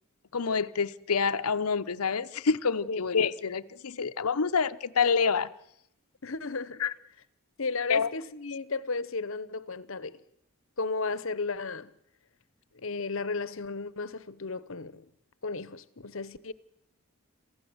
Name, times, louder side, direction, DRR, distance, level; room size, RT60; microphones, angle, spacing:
voice 1, 0.3-5.5 6.8-6.9 7.9-8.1, left 5 dB, 90° left, 0.8 m, -27 dB
voice 2, 6.2-6.8 7.6-10.2 10.8-11.9 12.7-15.1 15.4-16.5, left 3 dB, 65° left, 1.0 m, -34 dB
27.5 x 15.5 x 7.9 m
head